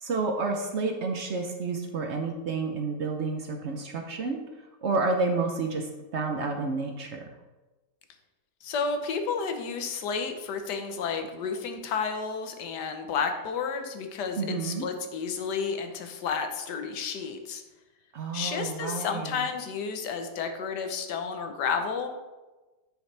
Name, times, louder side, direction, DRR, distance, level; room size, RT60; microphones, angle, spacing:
voice 1, 0.0-4.4 4.8-7.2 14.4-14.9 18.1-19.4, right 4 dB, 60° right, 4 dB, 0.7 m, -30 dB
voice 2, 8.6-17.6 18.3-22.2, left 5 dB, 80° left, 6 dB, 1.4 m, -31 dB
9.0 x 5.0 x 3.3 m, 1.1 s
omnidirectional pair, 1.8 m